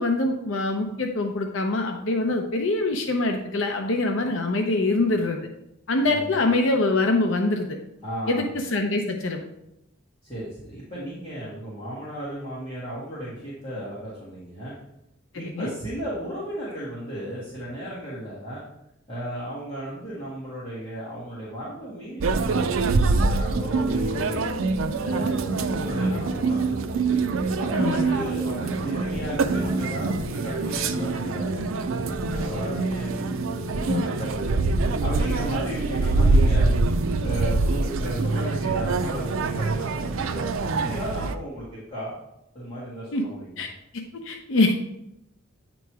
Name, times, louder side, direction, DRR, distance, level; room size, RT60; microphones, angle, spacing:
voice 1, 0.0-5.4 5.9-7.8 8.3-9.4 15.3-15.7 27.7-28.2 33.9-34.1 43.1-43.2 43.6-43.7 44.1-44.8, left 2 dB, 70° left, 3 dB, 0.6 m, -24 dB
voice 2, 6.0-6.4 8.0-8.5 10.2-14.7 15.3-18.6 19.1-24.5 25.0-27.0 27.6-31.6 31.9-34.5 35.0-36.7 37.2-42.2 42.5-43.7, equal, 25° left, -10 dB, 1.8 m, -35 dB
sound 1, 22.2-41.3, right 3 dB, 85° right, 0.4 m, -25 dB
sound 2, 23.4-39.8, left 2 dB, 35° right, 1.6 m, -37 dB
9.0 x 3.0 x 4.7 m, 0.83 s
head